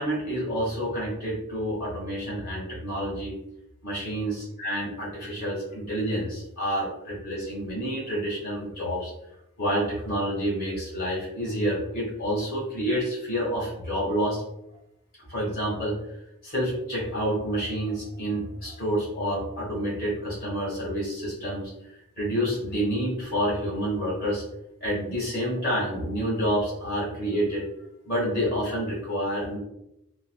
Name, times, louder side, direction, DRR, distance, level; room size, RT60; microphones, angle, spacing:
voice 1, 0.0-3.3 3.8-9.1 9.6-14.4 15.3-16.0 16.4-21.7 22.2-24.4 24.8-27.6 28.0-29.6, equal, 40° left, -4 dB, 1.4 m, -28 dB
3.9 x 2.1 x 2.3 m, 0.80 s
head